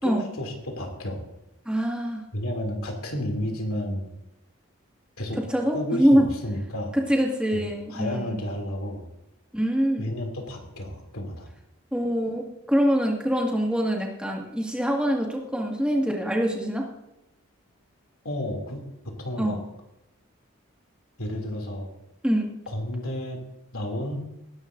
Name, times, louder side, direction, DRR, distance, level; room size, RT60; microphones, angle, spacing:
voice 1, 0.0-1.2 2.3-4.1 5.2-5.4 5.7-7.0 7.5-7.6 7.9-9.1 10.0-11.5 18.2-19.6 21.2-21.9 22.7-23.4 23.7-24.2, left 1 dB, 85° left, 2 dB, 2.9 m, -31 dB
voice 2, 1.7-2.2 5.5-6.3 6.9-8.4 9.5-10.1 11.9-16.9 19.4-19.6 22.2-22.4, equal, 5° right, -1 dB, 2.0 m, -24 dB
19.5 x 11.0 x 2.7 m, 0.90 s
head